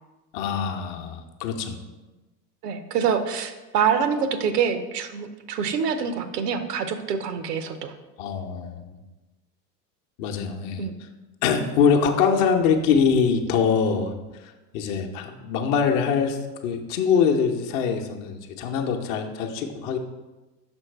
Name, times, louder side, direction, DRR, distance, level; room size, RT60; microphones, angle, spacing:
voice 1, 0.3-1.8 8.2-9.0 10.2-11.1 11.4-20.0, left 6 dB, 50° left, 2 dB, 0.9 m, -24 dB
voice 2, 2.6-7.9 10.8-10.9, right 7 dB, 70° right, 10 dB, 0.8 m, -25 dB
6.4 x 4.5 x 4.3 m, 1.1 s
figure-of-eight pair, 80°, 49 cm